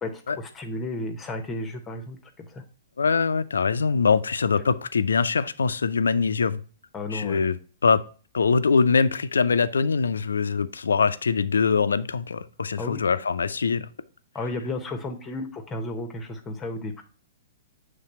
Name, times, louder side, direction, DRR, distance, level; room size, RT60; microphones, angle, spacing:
voice 1, 0.0-2.6 6.9-7.5 12.8-13.0 14.3-17.0, left 2 dB, 20° left, 5 dB, 0.8 m, -33 dB
voice 2, 3.0-6.6 7.1-7.6 7.8-8.0 8.3-13.9, left 5 dB, 75° left, 13 dB, 0.4 m, -23 dB
7.3 x 3.4 x 4.2 m, 0.38 s
figure-of-eight pair, 115°, 0 cm